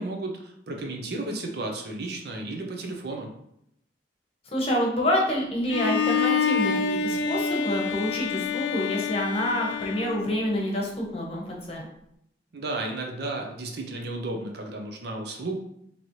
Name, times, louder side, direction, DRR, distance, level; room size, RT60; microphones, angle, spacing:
voice 1, 0.0-3.3 12.5-15.5, right 2 dB, 65° right, 2 dB, 0.7 m, -33 dB
voice 2, 4.5-11.8, equal, 35° left, -1 dB, 0.9 m, -27 dB
Bowed string instrument, 5.7-10.7, left 5 dB, 70° left, 0.3 m, -27 dB
4.0 x 3.0 x 3.1 m, 0.75 s
head